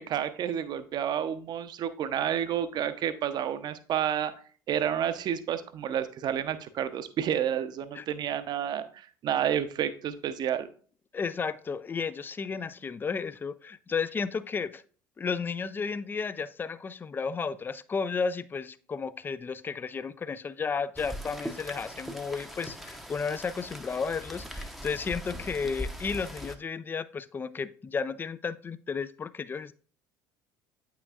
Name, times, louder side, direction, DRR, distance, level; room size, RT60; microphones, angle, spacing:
voice 1, 0.0-4.3 4.7-10.7, right 9 dB, 45° right, 0.6 m, -30 dB
voice 2, 11.1-14.8 15.2-29.7, left 5 dB, 20° left, 0.3 m, -33 dB
Rain, 21.0-26.6, equal, ahead, 0.7 m, -40 dB
8.6 x 5.7 x 2.4 m
figure-of-eight pair, 60°, 11 cm